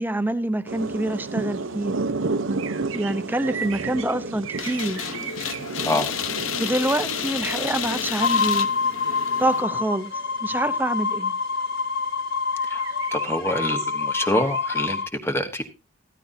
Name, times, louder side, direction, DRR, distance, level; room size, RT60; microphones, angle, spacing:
voice 1, 0.0-1.9 2.9-5.0 6.6-8.7 9.4-10.1 10.4-11.3, right 1 dB, 10° right, 0.7 m, -26 dB
sound 1, 0.7-11.1 11.6-11.8 12.2-14.8, right 3 dB, 80° right, 0.8 m, -33 dB
sound 2, 4.6-9.6, left 7 dB, 85° left, 0.9 m, -30 dB
sound 3, 8.2-15.1, left 4 dB, 50° left, 0.8 m, -26 dB
voice 2, 13.1-15.6, left 1 dB, 10° left, 1.1 m, -26 dB
14.0 x 13.5 x 2.7 m
head